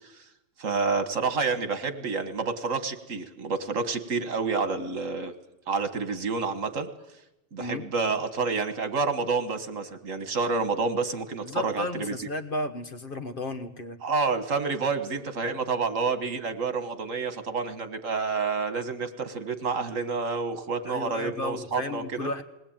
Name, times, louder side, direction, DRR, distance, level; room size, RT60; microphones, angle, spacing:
voice 1, 0.6-5.3 5.7-6.9 7.5-12.3 14.0-22.3, right 4 dB, 75° right, 10 dB, 1.9 m, -29 dB
voice 2, 11.4-14.0 20.8-22.4, left 2 dB, 45° left, 9 dB, 1.3 m, -34 dB
20.5 x 19.0 x 8.8 m, 0.89 s
omnidirectional pair, 1.3 m